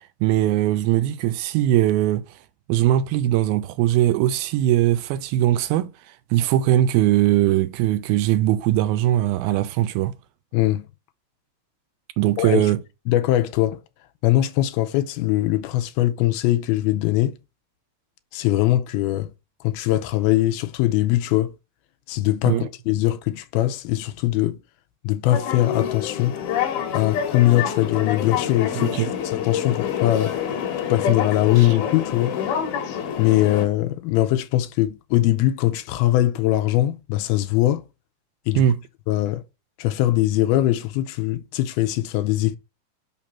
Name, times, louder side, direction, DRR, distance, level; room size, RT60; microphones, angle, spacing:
voice 1, 0.2-2.2 2.7-5.9 6.3-10.1 12.2-12.8 22.5-22.7 28.7-29.1 31.6-31.7 38.6-38.8, right 13 dB, 80° right, 2.4 m, -20 dB
voice 2, 10.5-10.9 12.4-12.6 13.1-13.8 14.2-17.4 18.3-19.3 19.6-21.5 22.1-24.6 25.0-26.4 26.9-30.4 30.9-32.4 33.2-37.8 38.5-38.6 39.1-39.4 39.8-42.6, left 14 dB, 85° left, 2.5 m, -21 dB
sound 1, 25.3-33.7, left 8 dB, 65° left, 2.4 m, -27 dB
6.0 x 5.9 x 4.2 m
omnidirectional pair, 4.4 m